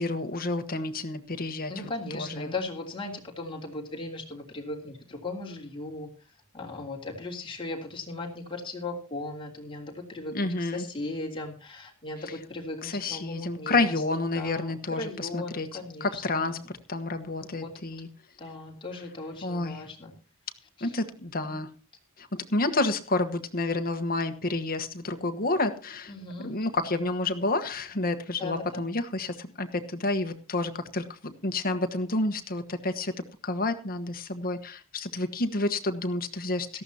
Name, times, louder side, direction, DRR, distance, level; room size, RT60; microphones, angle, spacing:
voice 1, 0.0-1.7 2.1-2.5 10.3-10.8 12.8-15.7 16.0-16.6 16.9-18.1 19.4-19.8 20.8-21.7 22.2-26.1 26.4-33.1 33.4-36.8, left 2 dB, 40° left, 8 dB, 1.3 m, -29 dB
voice 2, 1.7-6.1 6.5-14.0 14.3-16.7 17.4-17.8 18.4-20.1 20.8-20.9 21.4-21.5 26.1-26.5 28.4-28.8, left 2 dB, 25° left, -1 dB, 3.2 m, -37 dB
18.0 x 14.0 x 2.9 m, 0.34 s
head